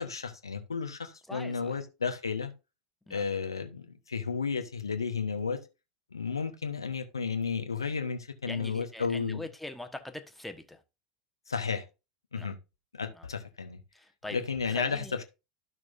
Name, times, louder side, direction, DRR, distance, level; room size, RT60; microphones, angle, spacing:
voice 1, 0.0-2.5 3.1-5.6 6.1-9.4 11.5-11.8 12.3-12.6 12.9-13.8 14.3-15.2, left 5 dB, 80° left, 0.9 m, -33 dB
voice 2, 1.3-1.8 3.1-3.2 8.5-10.8 12.3-12.5 13.2-13.3 13.9-14.4 14.7-15.1, left 2 dB, 5° left, 1.2 m, -42 dB
12.5 x 6.1 x 2.6 m
figure-of-eight pair, 80°, 2 cm